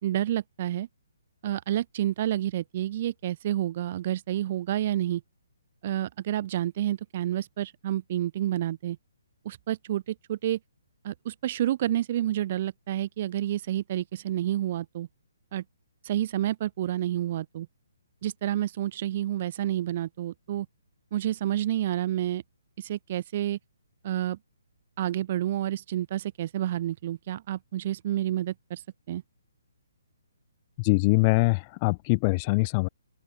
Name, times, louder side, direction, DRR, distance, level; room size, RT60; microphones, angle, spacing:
voice 1, 0.0-0.9 1.4-5.2 5.8-9.0 9.4-10.6 11.0-15.1 15.5-15.6 16.0-17.7 18.2-20.7 21.1-22.4 22.8-23.6 24.0-24.4 25.0-28.8 29.1-29.2, right 12 dB, 40° right, 2.3 m, -29 dB
voice 2, 30.8-32.9, left 28 dB, 25° left, 3.3 m, -23 dB
open air
figure-of-eight pair, 135°, 0 cm